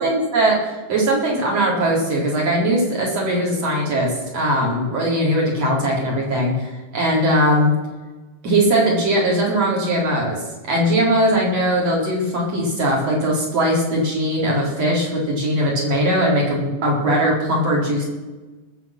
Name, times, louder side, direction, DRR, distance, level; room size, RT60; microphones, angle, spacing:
voice 1, 0.0-7.7 8.4-10.4 10.7-18.1, right 1 dB, 55° right, -3 dB, 5.2 m, -20 dB
19.5 x 7.6 x 6.0 m, 1.2 s
omnidirectional pair, 3.4 m